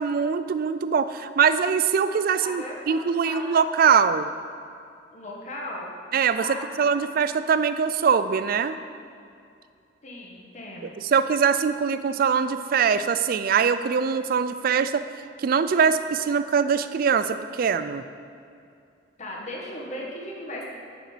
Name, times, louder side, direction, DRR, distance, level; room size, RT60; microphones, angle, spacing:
voice 1, 0.0-4.3 6.1-6.5 6.8-8.8 11.0-15.1 15.4-18.0, right 6 dB, 50° right, 12 dB, 0.3 m, -22 dB
voice 2, 2.4-3.0 3.2-3.5 5.1-6.6 6.9-7.0 10.0-11.1 19.2-20.6, left 1 dB, 40° left, -3 dB, 1.4 m, -37 dB
9.9 x 5.2 x 5.0 m, 2.5 s
head